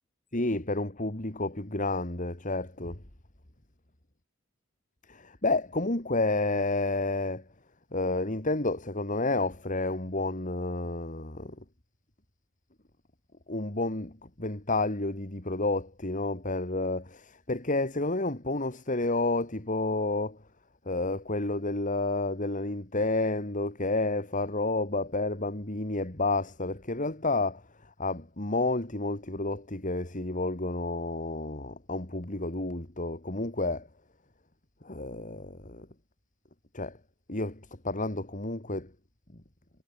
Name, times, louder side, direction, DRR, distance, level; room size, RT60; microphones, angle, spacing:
voice 1, 0.3-3.0 5.1-7.4 7.9-11.6 13.5-20.4 20.8-33.9 34.8-35.9 36.7-37.0 37.3-38.9, left 2 dB, 40° left, 2.8 m, -30 dB
head